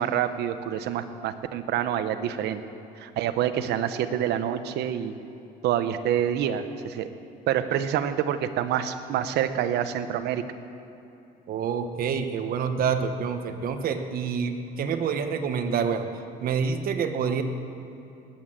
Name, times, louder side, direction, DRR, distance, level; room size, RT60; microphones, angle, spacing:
voice 1, 0.0-2.6 3.0-5.2 5.6-7.1 7.5-10.4, right 10 dB, 80° right, 10 dB, 1.0 m, -27 dB
voice 2, 11.5-16.1 16.4-17.4, right 6 dB, 60° right, 7 dB, 1.3 m, -27 dB
20.0 x 8.8 x 7.6 m, 2.8 s
cardioid pair, 110°, 17 cm